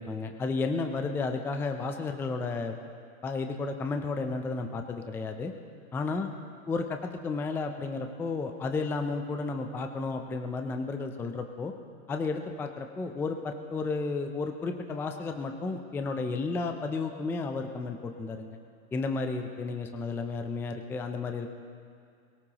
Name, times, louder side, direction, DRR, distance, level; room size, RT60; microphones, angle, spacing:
voice 1, 0.0-2.8 3.2-5.5 5.9-6.3 6.7-11.7 12.1-18.6 18.9-21.5, left 3 dB, 5° left, 5 dB, 0.4 m, -32 dB
22.0 x 18.0 x 2.9 m, 2.3 s
hypercardioid pair, 125°, 44 cm